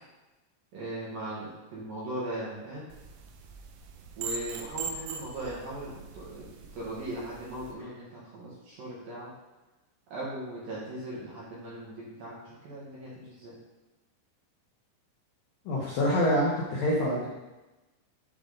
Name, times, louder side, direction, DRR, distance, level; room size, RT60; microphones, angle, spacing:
voice 1, 0.7-2.9 4.2-6.5 6.7-9.3 10.1-13.6, right 1 dB, 65° right, -6 dB, 2.5 m, -38 dB
sound 1, 2.9-7.7, right 5 dB, 85° right, 3.2 m, -41 dB
voice 2, 15.7-17.3, equal, 80° left, -5 dB, 2.0 m, -26 dB
11.0 x 3.6 x 3.9 m, 1.1 s
omnidirectional pair, 5.7 m